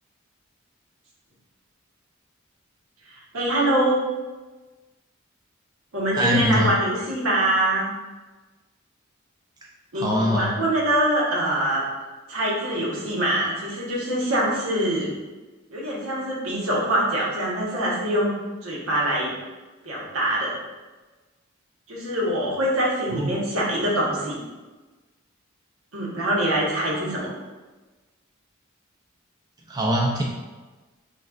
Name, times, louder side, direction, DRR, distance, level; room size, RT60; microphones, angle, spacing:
voice 1, 3.1-4.0 5.9-7.9 9.9-11.8 12.3-15.1 15.7-18.3 18.6-19.3 19.8-20.5 21.9-24.4 25.9-27.3, right 1 dB, 85° right, -5 dB, 1.2 m, -24 dB
voice 2, 6.1-6.7 9.9-10.5 23.1-23.3 29.7-30.2, equal, 20° right, -3 dB, 0.4 m, -22 dB
6.2 x 2.4 x 2.4 m, 1.2 s
head